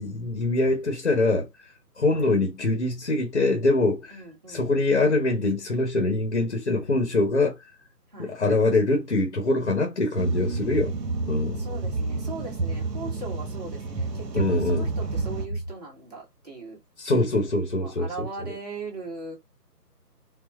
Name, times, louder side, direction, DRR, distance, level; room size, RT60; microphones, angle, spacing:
voice 1, 0.0-1.5 2.0-4.2 4.5-7.6 8.2-10.9 11.3-11.6 14.3-14.8 17.0-18.3, left 2 dB, 45° left, 1.0 m, -23 dB
voice 2, 4.1-4.9 8.1-8.3 11.5-16.8 17.8-19.3, right 2 dB, 25° right, 1.2 m, -39 dB
sound 1, 10.2-15.5, right 3 dB, 75° right, 1.0 m, -30 dB
4.1 x 2.1 x 3.1 m
figure-of-eight pair, 160°, 50 cm